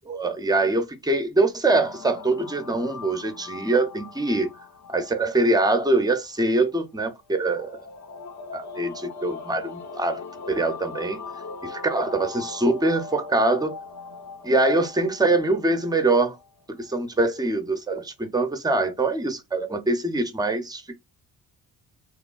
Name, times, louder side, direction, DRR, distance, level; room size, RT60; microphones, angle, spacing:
voice 1, 0.1-4.5 4.9-7.8 8.5-10.2 10.5-11.2 11.6-13.7 14.4-16.4 16.7-21.0, right 2 dB, 10° right, 0.5 m, -23 dB
sound 1, 1.7-17.0, left 4 dB, 50° left, 0.7 m, -41 dB
3.0 x 2.1 x 2.2 m
cardioid pair, 80°, 36 cm